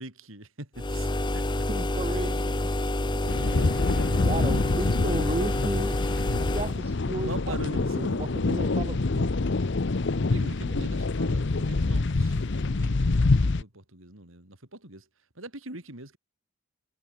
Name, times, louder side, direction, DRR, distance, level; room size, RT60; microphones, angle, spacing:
voice 1, 0.0-1.7 2.1-2.2 3.1-4.7 7.3-8.7 10.2-15.0 15.4-16.2, right 2 dB, 65° right, 4.8 m, -42 dB
sound 1, 0.8-6.8, left 1 dB, 20° left, 0.9 m, -28 dB
voice 2, 1.7-3.0 4.3-6.0 6.4-9.3, right 2 dB, 30° right, 0.6 m, -34 dB
sound 2, 3.3-13.6, left 3 dB, 55° left, 0.7 m, -26 dB
head